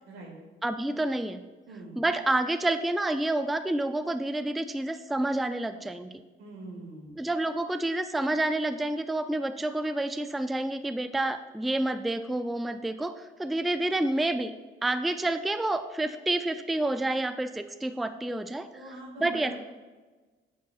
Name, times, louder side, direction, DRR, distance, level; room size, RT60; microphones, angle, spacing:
voice 1, 0.6-1.4 2.0-6.1 7.2-14.5 14.8-18.7 19.2-19.6, right 2 dB, ahead, 10 dB, 0.3 m, -29 dB
voice 2, 1.7-2.0 6.4-7.2 18.7-19.6, right 2 dB, 90° right, -1 dB, 2.1 m, -43 dB
8.3 x 7.4 x 2.4 m, 1.3 s
cardioid pair, 90°, 20 cm